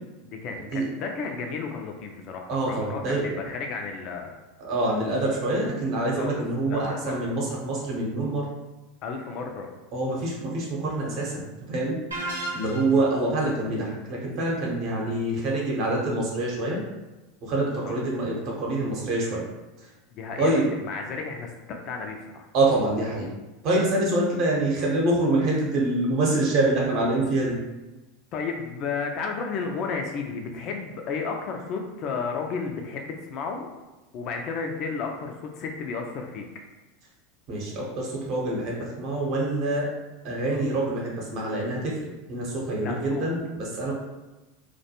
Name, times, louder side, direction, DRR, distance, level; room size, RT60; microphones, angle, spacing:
voice 1, 0.4-4.3 6.2-6.4 6.7-7.1 9.0-9.7 17.8-17.9 20.1-22.4 28.3-33.7 34.1-36.4 42.8-43.3, left 5 dB, 45° left, 2 dB, 0.3 m, -33 dB
voice 2, 2.5-3.3 4.6-8.5 9.9-16.8 17.4-19.5 19.8-19.9 20.4-20.7 22.5-23.3 23.6-27.6 37.5-39.9 40.2-43.9, right 2 dB, 50° right, -3 dB, 0.8 m, -26 dB
sound 1, 12.1-13.1, right 1 dB, 85° right, 0.5 m, -33 dB
2.2 x 2.1 x 2.8 m, 1.1 s
figure-of-eight pair, 80°, 0 cm